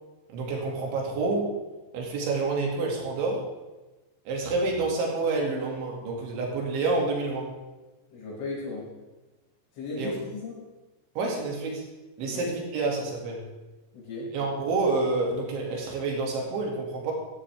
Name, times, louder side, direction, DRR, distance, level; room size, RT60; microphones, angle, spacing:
voice 1, 0.3-1.5 1.9-3.4 4.3-7.5 10.0-10.1 11.2-11.8 12.2-13.5 14.3-17.1, right 3 dB, 75° right, -1 dB, 4.8 m, -28 dB
voice 2, 8.1-8.9 9.8-10.6 12.2-12.4 13.9-14.3, left 3 dB, 70° left, -7 dB, 8.1 m, -36 dB
15.5 x 14.0 x 3.6 m, 1.1 s
omnidirectional pair, 5.5 m